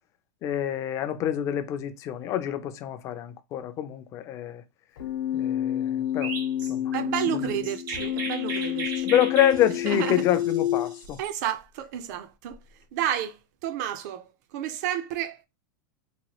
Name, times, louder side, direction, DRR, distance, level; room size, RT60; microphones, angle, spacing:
voice 1, 0.4-4.6 5.3-6.3 6.7-6.8 7.3-7.4 9.0-11.2, left 11 dB, 30° left, 0.4 m, -27 dB
Keyboard (musical), 5.0-10.9, left 11 dB, 80° left, 0.8 m, -29 dB
Chirp tweet, 6.2-11.3, right 4 dB, 85° right, 1.2 m, -37 dB
voice 2, 6.9-9.1 9.9-10.2 11.2-12.6 12.9-15.4, right 10 dB, 55° right, 0.5 m, -31 dB
3.0 x 2.3 x 2.9 m
supercardioid pair, 150°, 11 cm